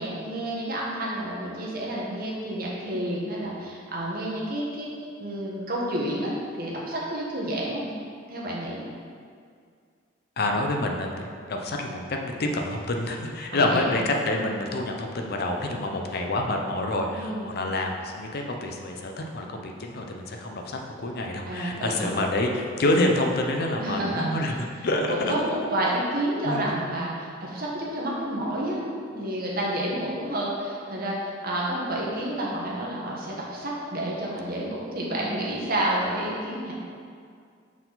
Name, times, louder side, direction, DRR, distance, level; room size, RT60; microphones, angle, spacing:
voice 1, 0.0-4.9 5.2-7.9 8.3-8.9 13.5-14.0 17.2-17.6 21.4-22.2 23.8-24.3 25.1-36.7, right 1 dB, 50° right, -4 dB, 1.2 m, -30 dB
voice 2, 10.4-11.1 11.4-25.4 26.4-26.8, left 1 dB, 55° left, 2 dB, 0.6 m, -27 dB
5.9 x 4.5 x 3.9 m, 2.2 s
head